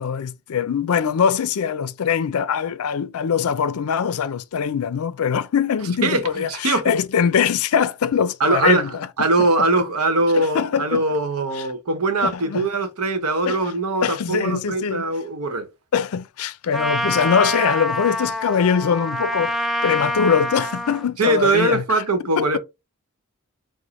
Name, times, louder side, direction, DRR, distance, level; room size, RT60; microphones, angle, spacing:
voice 1, 0.0-9.1 10.4-11.0 12.2-12.7 13.5-13.6 14.0-15.0 15.9-19.5 19.8-21.8 22.4-22.6, left 7 dB, 75° left, 0.4 m, -22 dB
voice 2, 6.0-6.9 8.4-15.7 21.2-22.6, right 2 dB, 80° right, 0.9 m, -21 dB
Trumpet, 16.7-21.1, left 1 dB, ahead, 0.4 m, -26 dB
4.9 x 2.1 x 4.1 m
head